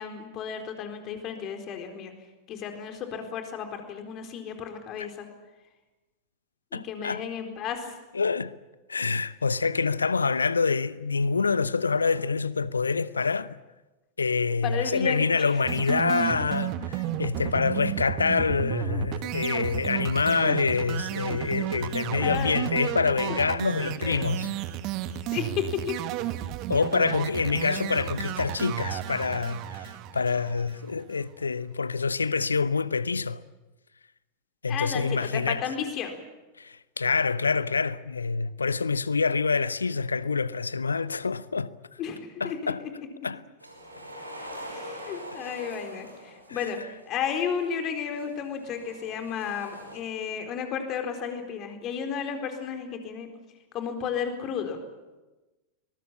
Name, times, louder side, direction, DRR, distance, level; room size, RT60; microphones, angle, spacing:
voice 1, 0.0-2.1 2.5-5.3 6.7-7.9 14.6-15.5 22.2-22.6 23.3-23.4 23.8-24.2 25.3-26.0 34.7-36.2 42.0-42.9 44.7-46.8 47.1-53.3 53.7-54.8, left 7 dB, 35° left, 4.2 m, -33 dB
voice 2, 6.7-7.2 8.1-8.5 8.9-13.6 14.2-24.5 26.7-33.4 34.6-35.6 36.6-41.7 42.4-42.8 43.2-43.4 46.5-46.7, left 4 dB, 75° left, 0.8 m, -26 dB
sound 1, 15.6-31.0, right 12 dB, 40° right, 1.4 m, -33 dB
sound 2, 43.6-46.9 47.8-50.0, equal, 85° right, 5.4 m, -43 dB
23.5 x 21.0 x 8.7 m
figure-of-eight pair, 90°, 0 cm